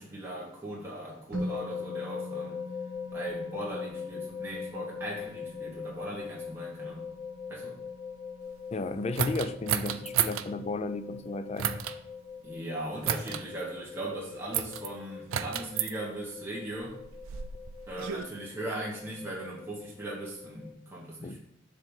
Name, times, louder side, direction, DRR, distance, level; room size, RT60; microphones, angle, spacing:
voice 1, 0.0-2.6 3.1-7.1 7.5-7.8 12.4-17.0 17.9-21.4, right 1 dB, 10° right, -4 dB, 1.0 m, -39 dB
sound 1, 1.3-20.7, left 5 dB, 50° right, 3.0 m, -41 dB
voice 2, 8.7-11.9 21.2-21.4, left 2 dB, 30° left, 11 dB, 0.3 m, -34 dB
sound 2, 9.2-10.5 11.6-12.0 13.0-13.4 14.5-14.9 15.3-15.9 16.8-18.2, right 9 dB, 85° right, 0.4 m, -31 dB
7.4 x 3.4 x 5.4 m, 0.75 s
head